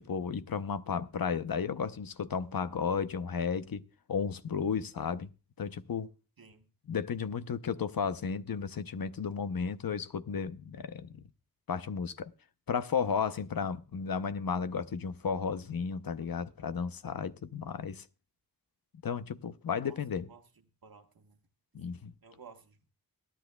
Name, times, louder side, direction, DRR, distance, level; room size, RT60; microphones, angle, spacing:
voice 1, 0.0-3.8 4.1-5.3 5.6-6.1 6.9-11.2 11.7-12.3 12.7-18.0 19.0-20.3 21.7-22.1, left 6 dB, 70° left, 0.7 m, -33 dB
voice 2, 6.4-6.7 19.8-20.4 20.8-21.4 22.2-22.9, right 5 dB, 70° right, 1.4 m, -55 dB
22.0 x 10.0 x 2.3 m
wide cardioid pair, 45°, 37 cm